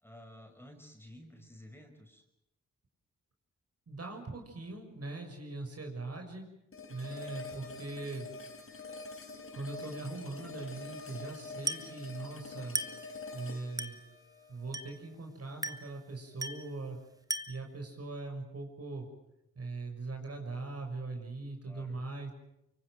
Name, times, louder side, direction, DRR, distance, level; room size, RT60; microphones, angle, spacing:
voice 1, 0.0-2.2 21.6-22.0, left 1 dB, 10° left, 4 dB, 5.5 m, -53 dB
voice 2, 3.9-6.5 6.9-8.3 9.5-12.8 13.3-14.0 14.5-17.0 17.5-19.1 19.5-22.3, right 3 dB, 55° right, 3 dB, 6.4 m, -41 dB
sound 1, 6.7-15.7, left 3 dB, 50° left, 3.5 m, -46 dB
Glass, 11.7-12.0 12.8-13.1 13.8-14.1 14.7-15.1 15.6-16.0 16.4-16.7 17.3-17.7, right 2 dB, 15° right, 1.7 m, -37 dB
24.5 x 24.5 x 7.7 m, 0.82 s
cardioid pair, 65°, 29 cm